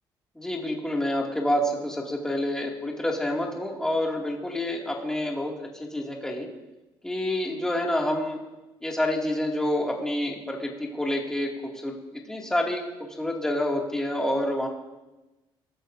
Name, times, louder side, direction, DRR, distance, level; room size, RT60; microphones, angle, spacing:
voice 1, 0.4-6.5 7.0-8.4 8.8-11.5 11.8-14.7, left 1 dB, 5° left, -1 dB, 2.3 m, -28 dB
21.0 x 14.5 x 2.7 m, 1.0 s
cardioid pair, 125°, 9 cm